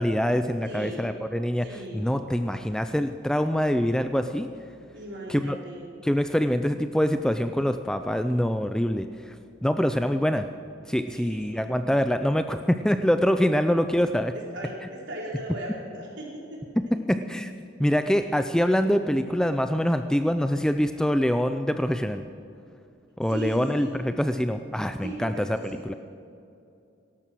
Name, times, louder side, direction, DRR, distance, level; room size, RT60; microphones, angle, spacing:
voice 1, 0.0-4.5 5.3-5.6 6.0-9.3 9.6-10.5 10.9-14.3 16.8-17.5 17.8-22.2 23.2-25.6 25.9-26.0, equal, 5° left, 9 dB, 0.4 m, -25 dB
voice 2, 0.6-1.0 1.6-2.0 4.9-5.9 11.1-11.7 14.3-16.6 23.3-24.0 25.0-26.0, right 1 dB, 60° right, -3 dB, 4.6 m, -38 dB
17.5 x 12.5 x 6.2 m, 2.6 s
head